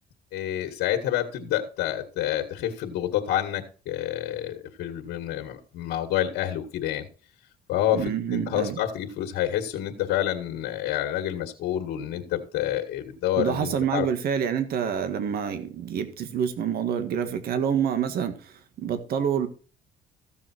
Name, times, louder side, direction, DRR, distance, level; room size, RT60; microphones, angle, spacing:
voice 1, 0.3-7.1 7.7-14.1, left 12 dB, 75° left, 2.0 m, -28 dB
voice 2, 7.9-8.8 13.4-19.5, right 8 dB, 65° right, 1.8 m, -27 dB
14.5 x 7.2 x 4.5 m
cardioid pair, 110°, 17 cm